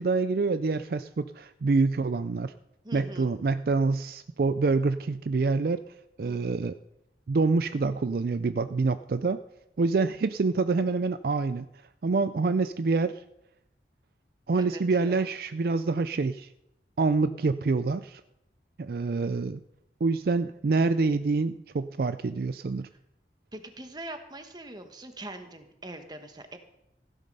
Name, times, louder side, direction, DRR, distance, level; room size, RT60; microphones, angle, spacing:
voice 1, 0.0-2.5 2.9-5.8 6.2-6.8 7.3-9.4 9.8-11.7 12.0-13.2 14.5-16.5 17.0-18.2 18.8-19.6 20.0-22.9, right 3 dB, 55° right, 12 dB, 0.4 m, -26 dB
voice 2, 2.8-3.3 6.2-6.5 14.6-15.3 23.5-26.6, right 1 dB, 25° right, 7 dB, 1.3 m, -42 dB
16.0 x 11.0 x 5.4 m, 0.87 s
head